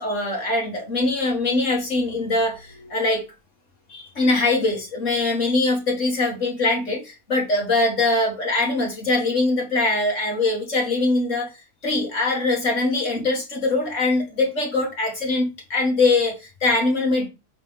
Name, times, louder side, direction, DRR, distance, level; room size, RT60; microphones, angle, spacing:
voice 1, 0.0-3.2 3.9-11.6 11.8-17.3, left 2 dB, 60° left, 2.1 m, -22 dB
8.9 x 3.4 x 3.6 m
omnidirectional pair, 1.5 m